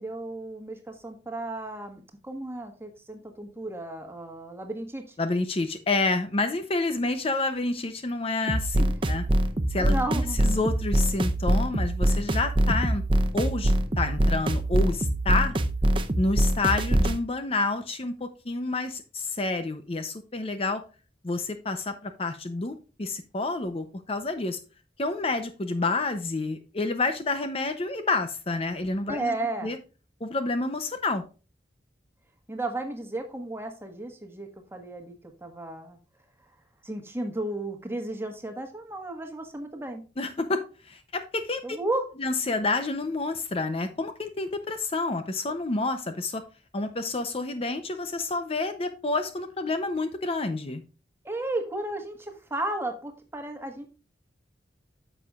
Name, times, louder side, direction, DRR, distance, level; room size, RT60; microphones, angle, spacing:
voice 1, 0.0-5.1 9.8-10.4 29.1-29.7 32.5-35.2 35.4-36.0 36.8-40.0 41.6-42.1 51.2-53.8, right 2 dB, 15° right, 4 dB, 1.4 m, -34 dB
voice 2, 5.2-9.2 9.7-13.0 13.3-15.5 16.2-20.8 21.2-24.6 25.0-29.3 29.6-29.8 30.2-31.2 40.2-41.8 42.2-46.4 46.7-50.8, left 3 dB, 30° left, 8 dB, 0.6 m, -29 dB
sound 1, 8.5-17.2, right 1 dB, 30° right, 0.7 m, -24 dB
9.8 x 7.0 x 2.4 m, 0.34 s
head